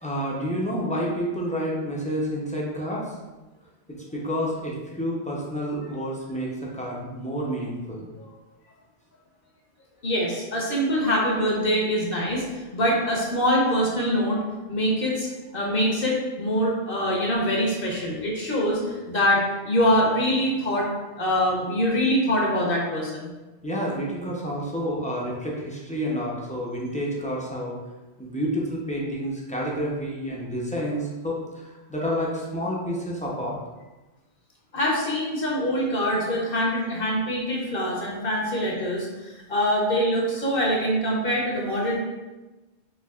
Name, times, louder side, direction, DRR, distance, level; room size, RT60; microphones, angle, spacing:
voice 1, 0.0-3.1 4.1-8.1 23.6-27.8 28.2-33.6 36.2-36.3, equal, 10° left, -4 dB, 0.4 m, -29 dB
voice 2, 10.0-14.4 14.7-20.9 21.2-23.3 34.7-42.0, equal, 60° left, -3 dB, 0.9 m, -24 dB
4.5 x 2.8 x 2.3 m, 1.1 s
omnidirectional pair, 1.1 m